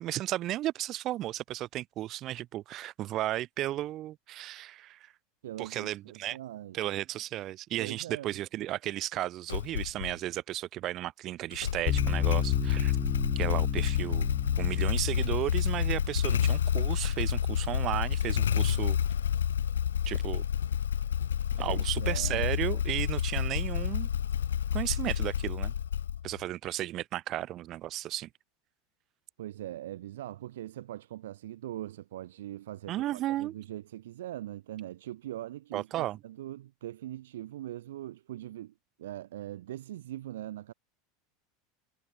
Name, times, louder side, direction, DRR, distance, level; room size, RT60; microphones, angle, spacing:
voice 1, 0.0-5.1 5.6-6.4 6.7-12.9 13.3-14.3 14.6-19.0 20.1-20.4 21.6-24.1 24.7-25.7 26.2-28.3 32.9-33.5 35.7-36.2, right 14 dB, 40° right, 2.9 m, -34 dB
voice 2, 5.4-6.8 7.8-8.4 21.6-22.5 29.4-40.7, right 13 dB, 65° right, 1.4 m, -41 dB
Motorcycle / Engine starting, 9.5-10.2 11.5-26.4, left 9 dB, 75° left, 1.6 m, -29 dB
sound 1, 11.9-19.0, left 8 dB, 30° left, 0.6 m, -35 dB
figure-of-eight pair, 80°, 0 cm